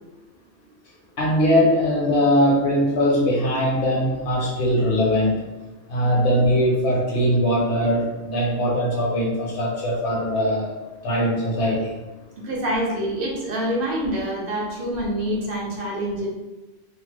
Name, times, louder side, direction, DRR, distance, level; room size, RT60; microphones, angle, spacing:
voice 1, 1.2-5.3 5.9-10.7 11.0-11.9, equal, 70° left, -5 dB, 1.1 m, -21 dB
voice 2, 12.4-16.3, right 1 dB, 55° right, -3 dB, 0.9 m, -26 dB
2.7 x 2.1 x 3.2 m, 1.1 s
omnidirectional pair, 1.2 m